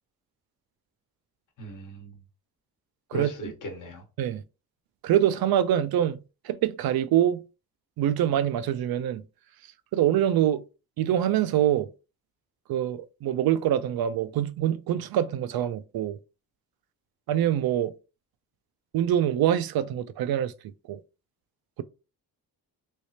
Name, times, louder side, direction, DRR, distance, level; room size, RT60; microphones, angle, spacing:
voice 1, 1.6-2.1 3.1-4.0, equal, 60° left, 1.1 m, -37 dB
voice 2, 3.1-3.5 4.2-4.4 5.0-6.2 6.4-7.4 8.0-9.2 9.9-10.6 11.0-11.9 12.7-16.2 17.3-17.9 18.9-20.5 20.9-21.0, right 11 dB, 85° right, 0.5 m, -25 dB
3.3 x 3.1 x 2.8 m
cardioid pair, 105°, 36 cm